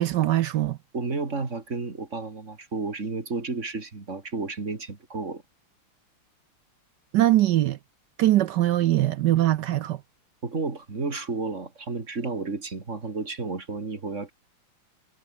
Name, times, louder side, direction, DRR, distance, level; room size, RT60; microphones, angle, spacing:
voice 1, 0.0-0.8 7.1-7.8 8.2-10.0, right 14 dB, 70° right, 1.0 m, -22 dB
voice 2, 0.9-5.4 10.4-14.3, right 3 dB, 35° right, 2.9 m, -32 dB
omnidirectional pair, 2.3 m